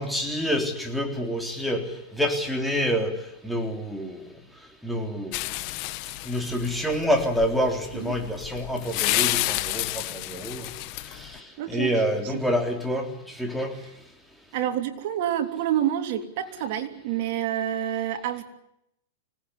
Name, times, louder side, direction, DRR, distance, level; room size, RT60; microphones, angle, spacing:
voice 1, 0.0-1.8 2.1-3.1 3.4-4.2 4.8-5.4 6.3-10.7 11.1-11.4 11.7-13.7, equal, ahead, 2 dB, 3.7 m, -27 dB
sound 1, 5.3-11.4, left 19 dB, 45° left, 1.1 m, -30 dB
voice 2, 11.6-11.9 12.2-12.4 14.5-18.4, right 11 dB, 55° right, 6 dB, 3.2 m, -28 dB
25.0 x 18.5 x 9.9 m, 0.79 s
supercardioid pair, 145°, 0 cm